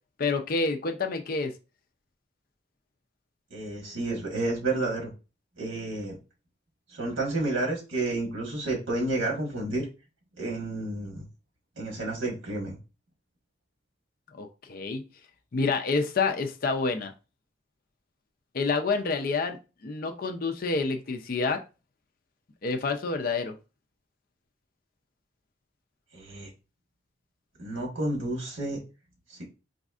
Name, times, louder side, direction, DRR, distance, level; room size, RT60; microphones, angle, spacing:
voice 1, 0.2-1.5 14.3-15.0 15.5-17.1 18.5-19.6 19.8-21.6 22.6-23.5, left 4 dB, 45° left, 5 dB, 0.4 m, -28 dB
voice 2, 3.5-5.1 5.6-6.2 6.9-9.9 10.4-11.2 11.8-12.7 26.1-26.5 27.6-28.8 29.3-29.4, right 2 dB, 80° right, -1 dB, 1.3 m, -30 dB
4.1 x 2.6 x 2.4 m, 0.30 s
head